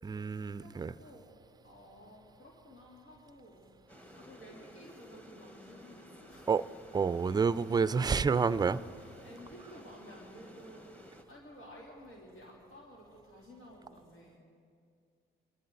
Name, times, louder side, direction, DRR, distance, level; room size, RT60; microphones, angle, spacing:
voice 1, 0.0-0.9 6.5-6.6 6.9-8.8, right 5 dB, 20° right, 0.4 m, -29 dB
voice 2, 0.6-1.3 1.6-3.7 4.2-6.5 8.6-14.4, equal, 80° left, 3.3 m, -53 dB
sound 1, 3.9-11.2, equal, 5° left, 1.3 m, -54 dB
24.5 x 14.5 x 4.0 m
cardioid pair, 90°, 20 cm